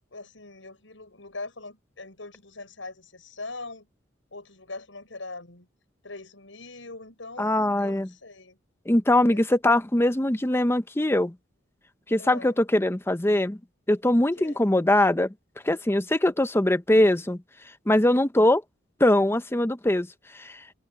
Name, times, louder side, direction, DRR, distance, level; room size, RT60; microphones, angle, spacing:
voice 1, 0.1-3.9 4.3-5.7 6.0-8.6 9.2-9.4 12.2-12.6 14.4-14.6, left 3 dB, 85° left, 6.9 m, -41 dB
voice 2, 7.4-8.1 8.9-11.3 12.1-13.6 13.9-15.3 15.6-17.4 17.9-18.6 19.0-20.1 20.3-20.6, left 1 dB, 15° left, 0.7 m, -22 dB
open air
head